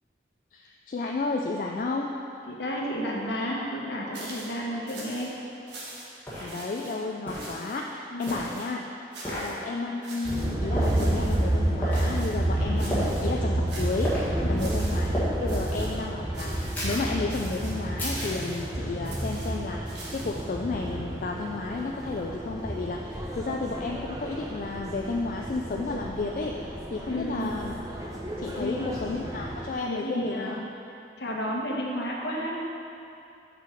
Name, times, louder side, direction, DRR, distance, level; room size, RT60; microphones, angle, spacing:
voice 1, 0.5-2.1 6.4-8.8 9.2-27.7 28.4-30.6, left 3 dB, 45° left, 0 dB, 0.3 m, -32 dB
voice 2, 2.5-5.3 8.1-8.4 14.4-14.8 27.1-27.6 28.5-28.9 29.9-30.7 31.2-32.6, equal, 65° left, -3 dB, 1.1 m, -32 dB
sound 1, 4.1-4.6 4.9-5.3 5.7-6.2 6.5-7.0 7.3-7.8 8.2-8.7 9.1-9.6 10.0-10.5 10.8-11.4 11.9-12.4 12.8-13.3 13.7-14.2 14.6-15.1 15.5-16.0 16.3-16.9 17.3-17.8 18.1-18.7 19.0-20.5, right 2 dB, 70° right, 1.3 m, -43 dB
sound 2, 5.5-5.6 6.3-6.5 7.3-7.5 8.2-8.5 9.2-9.5 10.8-11.0 11.8-12.0 12.9-13.2 14.0-14.3 15.1-15.3 16.7-17.1 18.0-18.4, equal, 10° left, 1.7 m, -32 dB
sound 3, 10.2-29.7, right 1 dB, 20° right, 0.6 m, -30 dB
6.8 x 5.0 x 4.5 m, 2.7 s
head